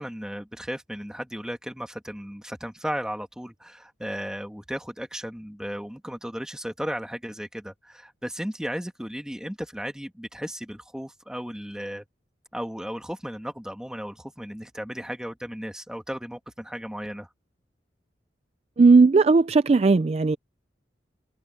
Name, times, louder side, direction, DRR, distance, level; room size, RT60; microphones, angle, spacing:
voice 1, 0.0-12.1 12.5-17.3, equal, 5° right, 1.8 m, -35 dB
voice 2, 18.8-20.4, right 4 dB, 35° right, 0.3 m, -17 dB
head